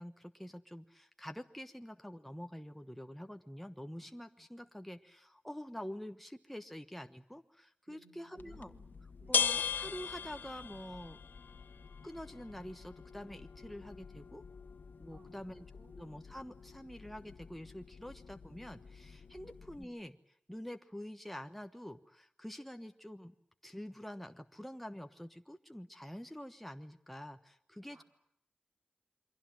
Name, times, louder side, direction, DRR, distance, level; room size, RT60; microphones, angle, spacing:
voice 1, 0.0-8.7 9.3-11.2 12.0-14.4 15.0-15.6 15.9-23.3 23.6-28.0, equal, 5° left, 7 dB, 1.2 m, -47 dB
voice 2, 7.9-9.4 15.1-16.2 19.4-19.7 27.9-28.0, right 3 dB, 75° right, 5 dB, 4.7 m, -63 dB
sound 1, 8.4-19.8, left 6 dB, 80° left, 1.3 m, -41 dB
28.0 x 23.5 x 7.7 m, 0.70 s
wide cardioid pair, 90°, 3 cm